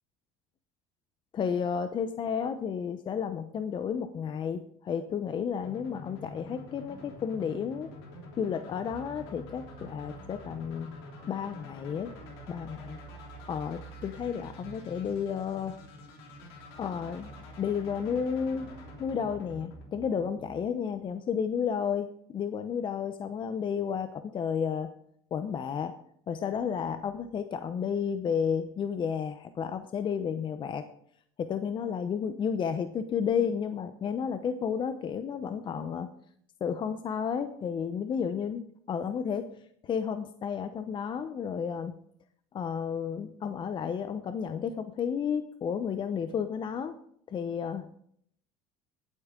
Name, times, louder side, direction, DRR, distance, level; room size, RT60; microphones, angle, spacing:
voice 1, 1.3-7.9 8.4-12.1 12.5-13.0 13.5-15.8 16.8-18.7 19.0-24.9 25.3-26.0 26.3-30.8 31.4-36.1 36.6-42.0 42.5-46.9 47.3-47.9, left 7 dB, 40° left, 10 dB, 0.7 m, -32 dB
sound 1, 5.6-20.6, left 2 dB, 90° left, 3.2 m, -48 dB
sound 2, 8.9-20.6, right 5 dB, 40° right, 3.4 m, -51 dB
19.5 x 8.3 x 3.7 m, 0.67 s
supercardioid pair, 95°, 13 cm